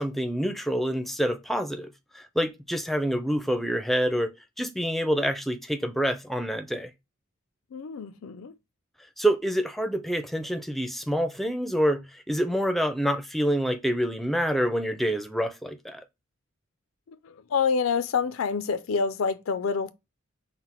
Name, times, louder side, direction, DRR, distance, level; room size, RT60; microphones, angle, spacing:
voice 1, 0.0-6.9 9.2-16.0, equal, ahead, 0.5 m, -27 dB
voice 2, 7.7-8.6 17.2-19.9, left 5 dB, 85° left, 0.4 m, -27 dB
5.7 x 2.1 x 4.3 m
head